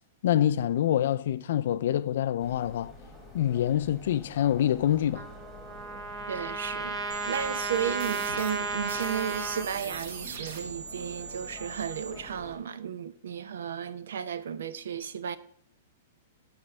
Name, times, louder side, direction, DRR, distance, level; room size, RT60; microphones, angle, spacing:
voice 1, 0.2-2.9 3.3-5.2, left 11 dB, 50° left, 0.4 m, -26 dB
sound 1, 2.4-12.6, left 1 dB, ahead, 1.4 m, -49 dB
Trumpet, 5.1-9.7, right 4 dB, 20° right, 0.6 m, -34 dB
voice 2, 6.3-15.4, right 8 dB, 80° right, 0.7 m, -34 dB
sound 2, 7.1-12.1, right 5 dB, 60° right, 1.5 m, -41 dB
14.0 x 5.2 x 3.3 m
supercardioid pair, 180°, 0 cm